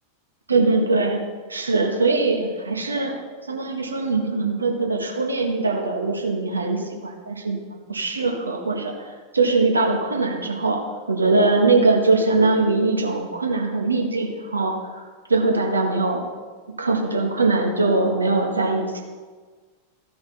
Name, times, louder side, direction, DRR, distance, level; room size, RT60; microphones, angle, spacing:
voice 1, 0.5-1.2 1.5-3.2 3.5-8.9 9.3-15.0 15.3-16.2 16.8-19.0, right 3 dB, 80° right, 2 dB, 1.4 m, -21 dB
14.5 x 5.1 x 4.1 m, 1.4 s
figure-of-eight pair, 90°, 0 cm